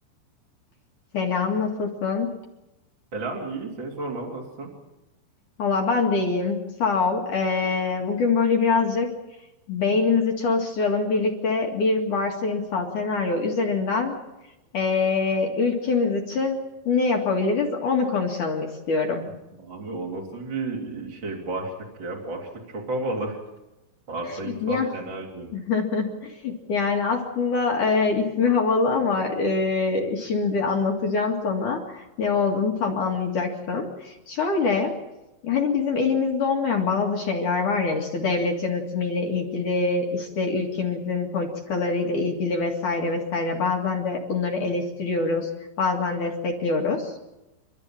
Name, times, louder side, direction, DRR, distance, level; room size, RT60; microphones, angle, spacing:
voice 1, 1.1-2.3 5.6-9.1 9.7-14.1 14.7-19.2 24.6-24.9 25.5-34.9 35.4-45.5 45.8-47.1, left 4 dB, 50° left, 1 dB, 3.0 m, -24 dB
voice 2, 3.1-4.7 19.5-21.7 22.0-23.4 24.1-25.5, right 2 dB, 30° right, -2 dB, 3.3 m, -32 dB
29.5 x 13.0 x 8.9 m, 0.98 s
omnidirectional pair, 5.5 m